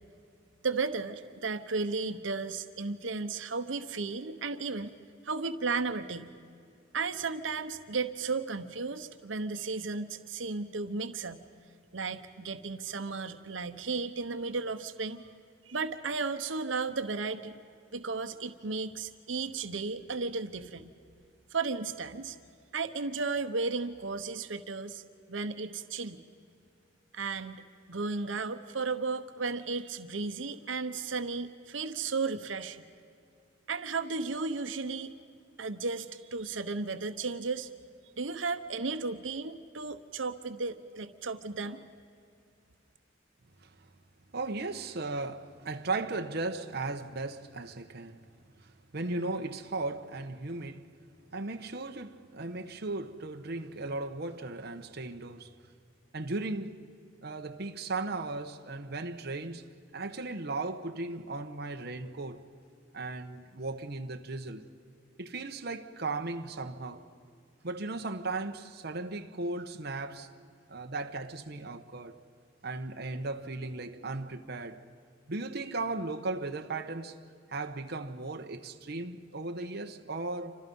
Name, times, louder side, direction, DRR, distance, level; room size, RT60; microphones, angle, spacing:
voice 1, 0.6-4.9 5.2-6.3 6.9-11.4 11.9-15.2 15.7-17.5 17.9-20.9 21.5-22.4 22.7-25.0 25.3-26.2 27.1-27.6 27.9-32.8 33.7-35.2 35.6-37.7 38.2-41.8, right 4 dB, 90° right, 1.1 m, -34 dB
voice 2, 44.3-48.2 48.9-50.9 51.3-55.5 56.1-56.8 57.2-59.6 59.9-62.4 62.9-64.7 65.2-67.1 67.6-70.3 70.7-72.2 72.6-74.8 75.3-77.2 77.5-80.6, right 3 dB, 60° right, 1.1 m, -36 dB
29.0 x 26.0 x 5.4 m
head